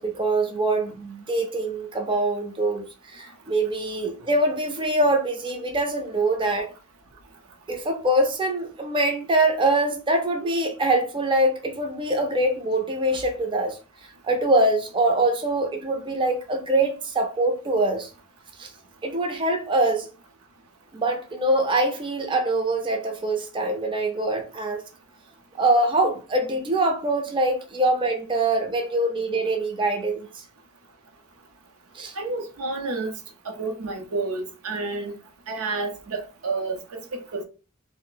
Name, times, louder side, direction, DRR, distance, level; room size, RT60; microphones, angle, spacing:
voice 1, 0.0-6.7 7.7-13.8 14.2-18.1 18.6-18.7 19.0-20.1 20.9-24.8 25.6-30.4 31.9-32.1, right 2 dB, 25° right, 0.4 m, -24 dB
voice 2, 32.1-33.1 33.4-35.1 35.5-37.4, right 3 dB, 85° right, 0.6 m, -30 dB
2.5 x 2.0 x 3.7 m
head